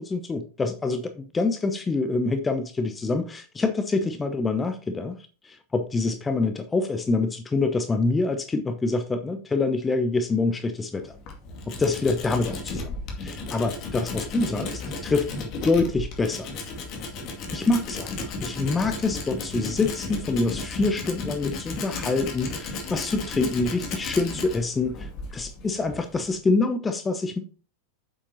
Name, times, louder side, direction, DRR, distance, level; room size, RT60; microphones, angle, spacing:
voice 1, 0.0-5.2 5.4-11.1 11.7-15.3 15.6-16.5 17.5-27.4, left 3 dB, 15° left, 8 dB, 0.8 m, -26 dB
Tools, 11.0-26.4, left 3 dB, 40° left, 2.2 m, -34 dB
8.9 x 7.5 x 2.8 m, 0.37 s
figure-of-eight pair, 90°, 0 cm